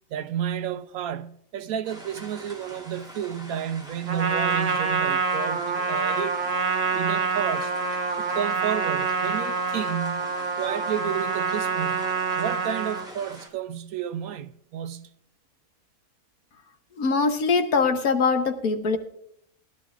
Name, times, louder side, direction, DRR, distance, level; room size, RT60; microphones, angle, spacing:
voice 1, 0.1-6.4 6.9-7.7 8.2-10.3 10.6-12.1 12.3-15.1, right 9 dB, 75° right, 1.0 m, -31 dB
sound 1, 1.8-13.5, right 1 dB, ahead, 2.4 m, -44 dB
Trumpet, 4.1-13.1, right 5 dB, 55° right, 1.4 m, -26 dB
voice 2, 17.0-19.0, left 4 dB, 70° left, 1.5 m, -22 dB
19.5 x 11.5 x 2.4 m
omnidirectional pair, 1.6 m